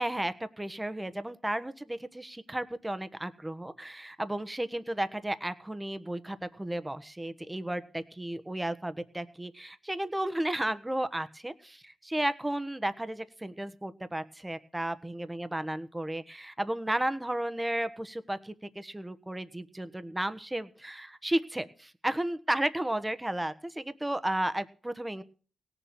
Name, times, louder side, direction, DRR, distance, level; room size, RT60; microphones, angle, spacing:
voice 1, 0.0-25.2, right 1 dB, 10° right, 13 dB, 1.2 m, -33 dB
17.5 x 7.1 x 7.7 m, 0.40 s
cardioid pair, 70°, 0 cm